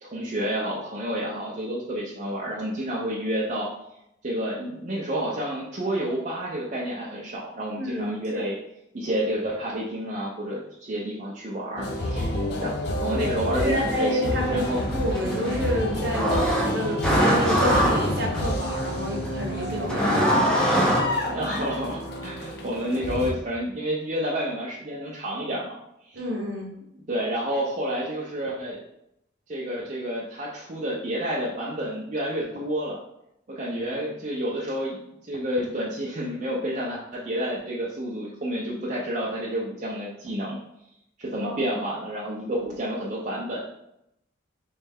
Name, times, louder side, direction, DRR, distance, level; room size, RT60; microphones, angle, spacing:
voice 1, 0.0-3.7 4.2-8.5 8.9-12.3 12.6-14.8 21.3-25.8 26.1-26.2 27.1-28.8 29.5-33.0 33.5-35.0 35.3-40.6 41.2-43.6, equal, 40° right, -6 dB, 0.5 m, -29 dB
voice 2, 7.8-8.5 13.6-14.7 14.9-16.4 16.7-21.1 26.1-26.7 41.4-41.8, equal, 55° right, -1 dB, 0.9 m, -29 dB
sound 1, 11.8-23.3, left 1 dB, 55° left, 0.5 m, -29 dB
sound 2, 14.3-21.0, equal, 5° left, 0.6 m, -25 dB
3.2 x 3.2 x 3.5 m, 0.81 s
head